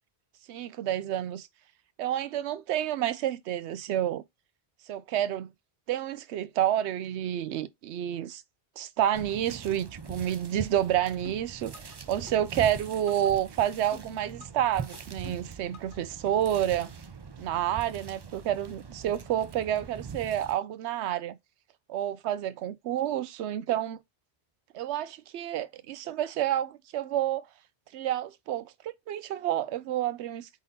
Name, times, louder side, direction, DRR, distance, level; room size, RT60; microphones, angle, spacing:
voice 1, 0.5-1.5 2.0-4.2 4.9-5.5 5.9-8.4 8.8-16.9 17.4-21.4 21.9-24.0 24.7-27.5 27.9-30.5, right 11 dB, 85° right, 0.8 m, -29 dB
sound 1, 9.1-20.5, right 6 dB, 45° right, 0.3 m, -43 dB
sound 2, 11.2-12.0 12.3-13.3 13.6-14.6 14.9-16.0 16.3-16.4, left 6 dB, 85° left, 1.3 m, -49 dB
3.7 x 3.6 x 4.0 m
omnidirectional pair, 1.1 m